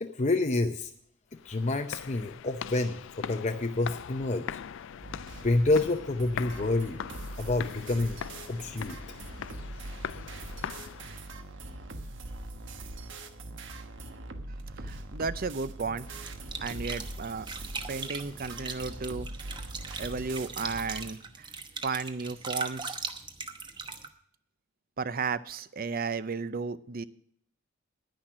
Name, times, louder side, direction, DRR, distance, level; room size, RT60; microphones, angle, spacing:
voice 1, 0.0-0.9 1.4-4.6 5.4-7.0 7.4-8.2 8.5-9.0, left 2 dB, 35° left, 5 dB, 0.7 m, -28 dB
sound 1, 1.3-11.4, left 8 dB, 65° left, 0.4 m, -41 dB
sound 2, 5.0-21.1, right 2 dB, 65° right, 1.2 m, -42 dB
voice 2, 14.8-16.1 16.6-17.5 17.9-19.3 20.0-21.5 21.8-23.0 25.0-27.0, right 4 dB, 45° right, 14 dB, 0.6 m, -34 dB
sound 3, 16.2-24.1, right 4 dB, 25° right, 1.0 m, -40 dB
10.5 x 10.0 x 6.2 m, 0.67 s
head